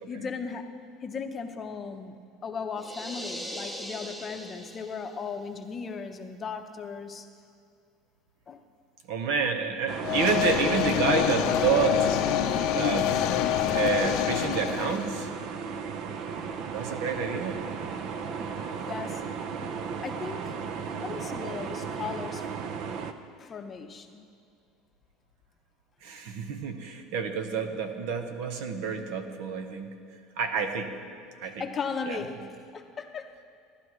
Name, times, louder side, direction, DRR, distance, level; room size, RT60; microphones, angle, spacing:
voice 1, 0.1-0.7 1.0-2.2 2.4-7.3 8.5-8.6 18.9-19.2 19.6-19.8 20.0-20.6 21.0-22.5 23.4-24.3 31.6-33.4, left 5 dB, 25° left, 6 dB, 0.7 m, -37 dB
sound 1, 2.8-5.3, equal, 10° right, 0.9 m, -40 dB
voice 2, 9.1-12.1 12.7-13.2 13.7-15.3 16.7-17.6 26.0-29.9 30.4-30.9 31.4-31.6 32.1-32.2, right 6 dB, 70° right, 6 dB, 1.2 m, -29 dB
sound 2, 9.9-23.1, right 6 dB, 55° right, 0.7 m, -35 dB
sound 3, 10.0-15.2, left 12 dB, 60° left, 0.6 m, -26 dB
17.5 x 11.5 x 3.1 m, 2.3 s
supercardioid pair, 130°, 0 cm